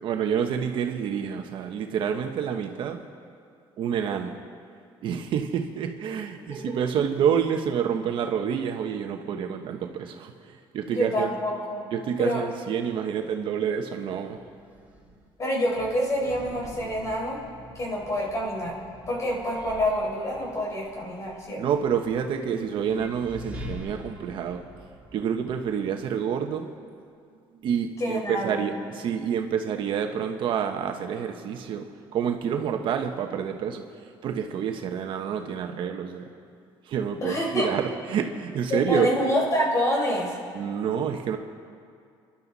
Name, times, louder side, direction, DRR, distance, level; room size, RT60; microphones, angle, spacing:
voice 1, 0.0-3.0 3.8-4.4 5.0-11.3 11.9-14.4 21.6-24.6 25.1-26.9 27.6-31.9 32.1-36.3 36.9-39.2 40.5-41.4, right 8 dB, 60° right, 5 dB, 1.2 m, -28 dB
voice 2, 10.8-11.8 12.2-12.4 15.4-17.4 17.7-18.8 19.1-21.6 28.0-28.6 37.2-37.7 38.7-40.3, equal, 35° left, -2 dB, 4.7 m, -27 dB
sound 1, 14.2-26.3, equal, 15° right, 3.4 m, -45 dB
29.5 x 11.5 x 4.2 m, 2.3 s
cardioid pair, 130°, 9 cm